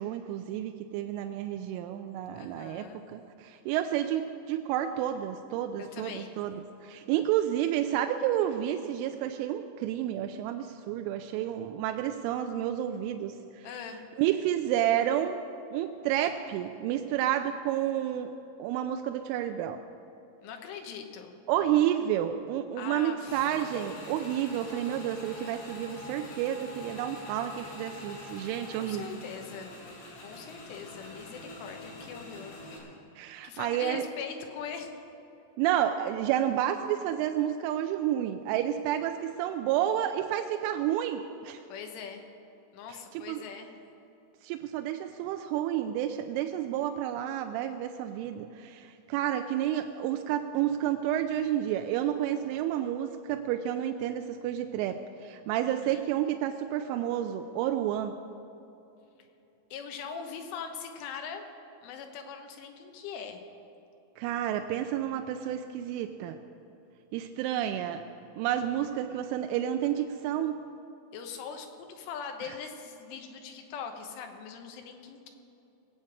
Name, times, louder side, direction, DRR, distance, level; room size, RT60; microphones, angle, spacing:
voice 1, 0.0-13.3 14.2-15.4 15.7-18.3 18.6-19.8 21.5-29.2 33.2-34.0 35.6-41.6 42.9-43.4 44.4-58.1 64.2-66.4 67.1-68.0 68.4-70.6, right 11 dB, 90° right, 6 dB, 3.1 m, -30 dB
voice 2, 2.3-3.0 5.8-6.3 13.6-14.1 20.4-21.4 22.8-23.5 23.7-24.0 28.7-29.7 30.2-32.6 33.4-34.9 41.7-42.2 42.7-43.7 55.8-56.1 59.7-61.4 61.8-63.4 71.1-75.3, left 6 dB, 90° left, 4 dB, 3.6 m, -41 dB
Motorcycle / Engine, 23.3-32.8, left 1 dB, 65° left, 4.8 m, -45 dB
20.0 x 8.7 x 6.3 m, 2.9 s
omnidirectional pair, 5.5 m